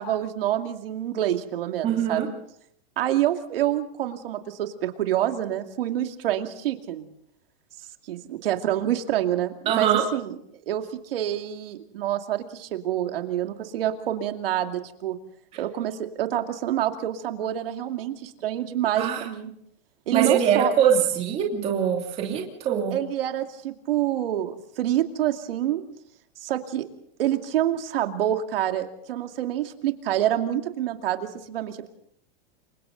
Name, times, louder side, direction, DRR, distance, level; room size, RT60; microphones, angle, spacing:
voice 1, 0.0-2.3 3.0-7.1 8.1-10.3 10.7-15.2 15.6-19.5 20.1-20.7 22.9-25.8 26.4-26.9 27.2-31.9, right 12 dB, 70° right, 5 dB, 2.5 m, -27 dB
voice 2, 1.8-2.3 9.7-10.0 15.5-15.6 19.0-19.3 20.1-22.9, right 8 dB, 20° right, 0 dB, 2.8 m, -23 dB
29.5 x 24.0 x 4.0 m, 0.70 s
supercardioid pair, 175°, 30 cm